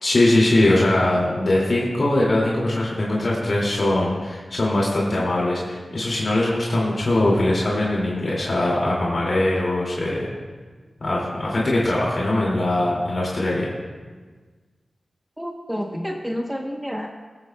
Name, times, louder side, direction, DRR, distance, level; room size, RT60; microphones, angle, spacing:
voice 1, 0.0-10.3 11.0-13.7, left 1 dB, 60° left, -4 dB, 2.2 m, -21 dB
voice 2, 15.4-17.1, equal, 5° right, 1 dB, 0.9 m, -29 dB
24.0 x 8.9 x 2.2 m, 1.4 s
wide cardioid pair, 85°, 0 cm